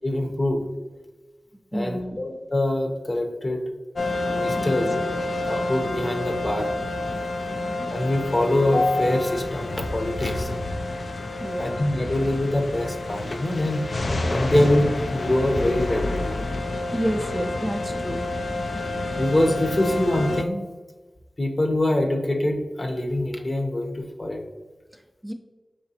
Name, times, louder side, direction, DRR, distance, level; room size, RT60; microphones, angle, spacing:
voice 1, 0.0-0.6 1.7-3.6 4.3-4.9 5.4-6.7 7.9-10.5 11.6-13.9 14.3-16.4 19.2-20.6 21.4-24.5, left 1 dB, 45° left, 3 dB, 0.7 m, -24 dB
voice 2, 1.7-2.2 4.6-5.0 7.5-7.9 11.4-11.8 16.9-18.2 24.9-25.3, equal, 5° right, 3 dB, 0.4 m, -30 dB
sound 1, 4.0-20.4, left 2 dB, 70° left, 0.3 m, -29 dB
4.9 x 3.2 x 2.8 m, 1.3 s
wide cardioid pair, 50°, 0 cm